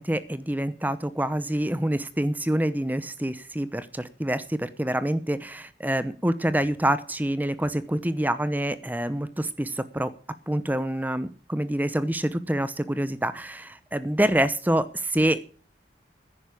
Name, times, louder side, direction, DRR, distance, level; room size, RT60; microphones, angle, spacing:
voice 1, 0.0-10.1 10.5-15.5, right 1 dB, 10° right, 13 dB, 0.8 m, -26 dB
10.5 x 9.7 x 8.4 m, 0.42 s
head